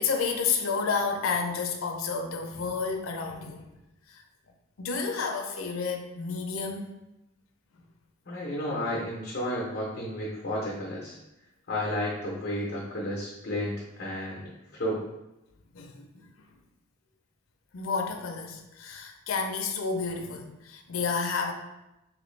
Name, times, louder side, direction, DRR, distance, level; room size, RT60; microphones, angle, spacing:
voice 1, 0.0-3.7 4.1-4.2 4.8-6.9 15.7-16.3 17.7-21.5, left 5 dB, 90° left, 4 dB, 0.5 m, -30 dB
voice 2, 8.3-11.2 11.7-15.0, left 1 dB, 55° left, -4 dB, 0.7 m, -32 dB
3.0 x 3.0 x 3.2 m, 0.94 s
head